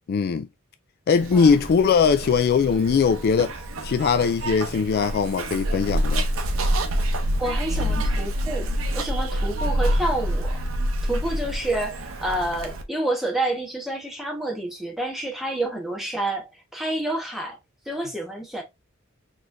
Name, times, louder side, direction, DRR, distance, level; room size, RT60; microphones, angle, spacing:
voice 1, 0.1-0.5 1.1-3.5 3.8-6.3, left 5 dB, 50° left, 0.3 m, -20 dB
Zipper (clothing), 1.1-12.8, right 1 dB, 75° right, 0.7 m, -27 dB
voice 2, 7.4-10.5 11.0-17.6 17.9-18.6, right 1 dB, ahead, 1.3 m, -29 dB
4.0 x 3.2 x 2.5 m
head